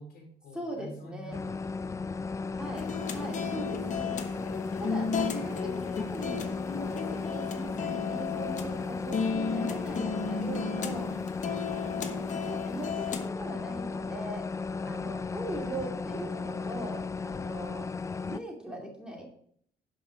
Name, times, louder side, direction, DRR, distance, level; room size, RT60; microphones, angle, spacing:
voice 1, 0.0-2.7 8.7-8.9 14.7-15.0, left 2 dB, 65° left, 3 dB, 3.3 m, -48 dB
voice 2, 0.5-1.4 2.5-4.5 4.8-11.1 11.7-14.5 14.9-17.9 18.2-19.2, right 1 dB, 5° right, 0 dB, 2.5 m, -40 dB
sound 1, 1.3-18.4, left 4 dB, 20° left, 0.3 m, -35 dB
sound 2, 2.7-13.3, left 5 dB, 45° left, 1.2 m, -35 dB
11.5 x 5.5 x 5.0 m, 0.64 s
cardioid pair, 110°, 17 cm